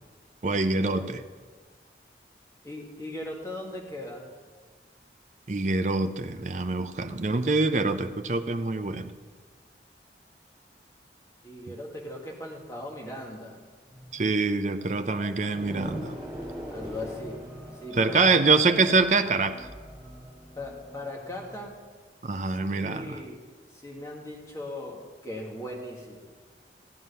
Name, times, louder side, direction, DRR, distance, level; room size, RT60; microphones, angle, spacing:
voice 1, 0.4-1.2 5.5-9.1 14.1-16.1 18.0-19.7 22.2-23.2, right 3 dB, 40° right, 9 dB, 0.6 m, -25 dB
voice 2, 2.6-4.3 11.4-13.6 16.7-17.4 17.7-18.6 20.5-21.8 22.5-23.4 23.7-26.2, left 1 dB, 20° left, -1 dB, 1.8 m, -38 dB
sound 1, 13.9-21.7, equal, 25° right, 3.9 m, -42 dB
15.0 x 9.5 x 5.5 m, 1.5 s
head